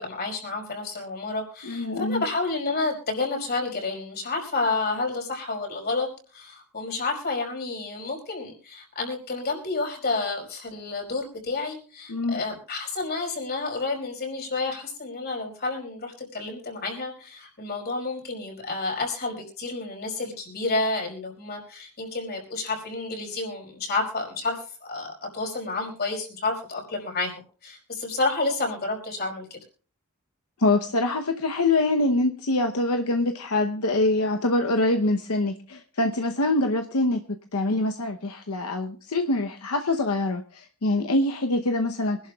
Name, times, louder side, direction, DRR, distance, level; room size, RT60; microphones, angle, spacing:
voice 1, 0.0-29.6, left 3 dB, 45° left, 1 dB, 5.0 m, -30 dB
voice 2, 1.6-2.2 12.1-12.4 30.6-37.2 37.5-42.2, left 2 dB, 80° left, 5 dB, 0.9 m, -24 dB
25.0 x 11.5 x 2.4 m, 0.41 s
head